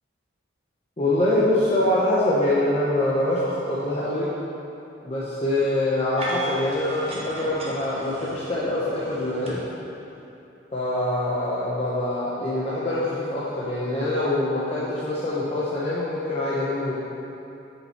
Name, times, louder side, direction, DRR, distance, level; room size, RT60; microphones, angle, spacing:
voice 1, 1.0-4.3 5.0-9.6 10.7-17.0, left 1 dB, 35° left, -8 dB, 0.9 m, -24 dB
sound 1, 6.2-9.5, right 1 dB, 30° right, 1.2 m, -37 dB
6.4 x 5.7 x 5.8 m, 2.9 s
head